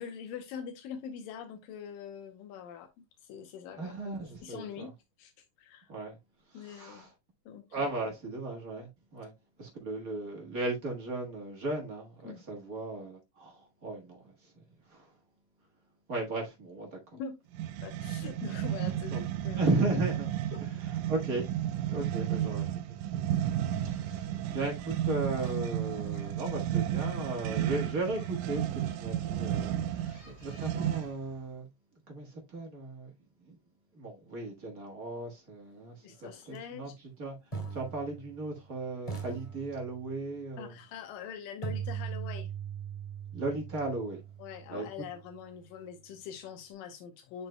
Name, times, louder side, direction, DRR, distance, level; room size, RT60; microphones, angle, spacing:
voice 1, 0.0-4.9 5.2-5.9 6.5-7.1 7.5-7.9 12.2-12.4 17.1-17.4 17.8-19.7 20.5-20.6 22.4-22.5 36.0-37.0 40.6-42.5 44.4-47.5, left 7 dB, 85° left, 2.5 m, -44 dB
voice 2, 3.8-4.9 5.9-6.2 6.5-7.1 7.7-9.3 9.6-14.5 14.9-15.1 16.1-17.0 19.1-19.2 19.5-20.3 20.6-20.7 21.1-21.6 21.9-22.6 23.1-23.2 23.7-31.7 32.1-33.1 33.5-33.6 33.9-36.9 37.2-37.4 37.7-40.7 43.3-44.2 44.7-44.8, right 2 dB, 45° right, 1.1 m, -36 dB
sound 1, 17.5-31.3, right 11 dB, 80° right, 2.0 m, -33 dB
sound 2, 24.5-31.1, equal, 45° left, 3.0 m, -55 dB
sound 3, 36.4-36.6 37.5-38.7 39.1-40.3 41.6-45.5, right 7 dB, 10° left, 1.9 m, -40 dB
11.0 x 4.3 x 2.2 m
omnidirectional pair, 3.9 m